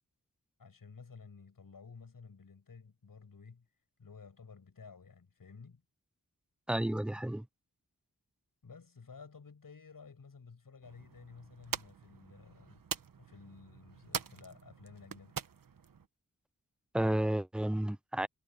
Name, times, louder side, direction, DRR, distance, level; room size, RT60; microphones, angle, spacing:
voice 1, 0.6-3.7 4.0-5.8 8.6-12.8 13.2-15.4, left 5 dB, 80° left, 6.7 m, -53 dB
voice 2, 6.7-7.5 16.9-18.3, right 1 dB, 5° right, 0.4 m, -31 dB
sound 1, 10.8-16.1, right 7 dB, 80° right, 1.2 m, -44 dB
cardioid pair, 50°, 33 cm